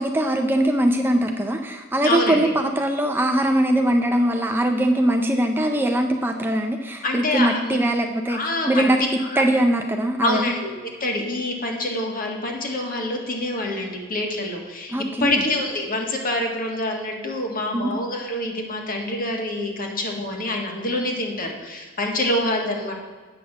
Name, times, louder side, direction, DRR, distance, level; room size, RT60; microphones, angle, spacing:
voice 1, 0.0-8.4 8.7-10.5 14.9-15.4 17.7-17.9, right 1 dB, 10° right, 4 dB, 0.5 m, -21 dB
voice 2, 2.0-2.5 7.0-7.8 8.3-9.4 10.2-10.7 11.0-14.9 15.2-22.9, left 1 dB, 45° left, 1 dB, 1.7 m, -26 dB
8.6 x 6.1 x 7.2 m, 1.4 s
head